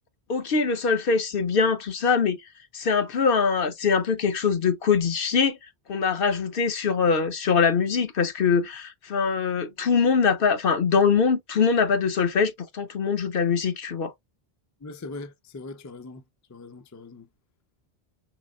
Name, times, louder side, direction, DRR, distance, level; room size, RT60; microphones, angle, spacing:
voice 1, 0.3-2.4 2.7-5.6 5.9-14.1, left 5 dB, 60° left, 0.9 m, -23 dB
voice 2, 14.8-16.2 16.5-17.3, left 3 dB, 25° left, 0.4 m, -40 dB
4.7 x 4.1 x 2.3 m
omnidirectional pair, 1.1 m